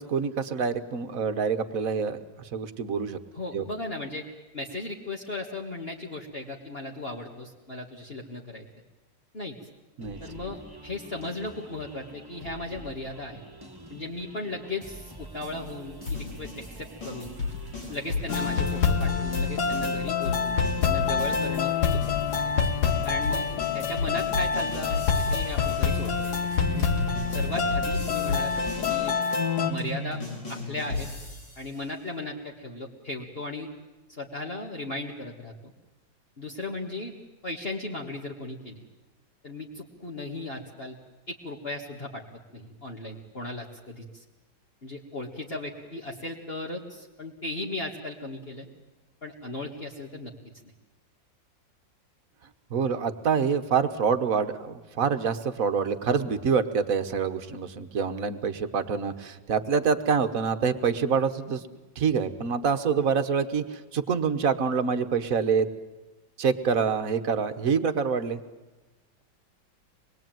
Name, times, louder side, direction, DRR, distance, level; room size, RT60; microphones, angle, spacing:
voice 1, 0.0-2.2 2.5-3.2 3.5-3.6 10.0-10.2 52.7-61.6 62.0-65.7 66.4-68.4, right 6 dB, 50° right, 9 dB, 1.7 m, -26 dB
voice 2, 3.3-4.3 4.5-8.7 9.3-9.6 10.2-13.4 13.9-17.4 17.9-22.5 23.0-23.5 23.7-26.9 27.3-29.1 29.7-30.2 30.5-31.1 31.6-33.7 34.1-35.7 36.4-37.1 37.4-38.8 39.4-41.0 41.3-42.2 42.5-44.2 44.8-48.7 49.2-50.3, left 2 dB, 30° left, -2 dB, 2.2 m, -36 dB
sound 1, 10.0-29.2, right 1 dB, 10° right, 2.2 m, -45 dB
sound 2, 16.1-21.6 21.9-31.7, left 3 dB, 80° left, 7.8 m, -33 dB
sound 3, 18.3-29.7, left 6 dB, 65° left, 1.9 m, -26 dB
25.5 x 21.0 x 9.2 m, 1.1 s
omnidirectional pair, 2.0 m